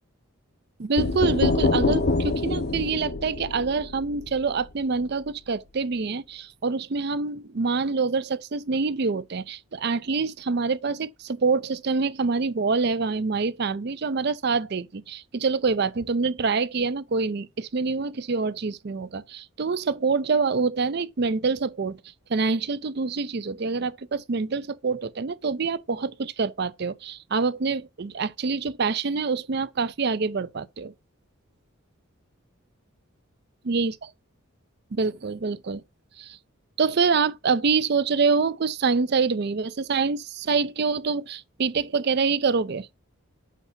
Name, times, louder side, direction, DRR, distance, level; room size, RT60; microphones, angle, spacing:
voice 1, 0.8-22.0 22.3-30.9 33.7-33.9 34.9-35.8 36.2-36.4 36.8-42.9, right 4 dB, 50° right, 0.5 m, -26 dB
sound 1, 1.0-4.7, left 3 dB, 50° left, 0.7 m, -25 dB
8.2 x 2.8 x 5.7 m
head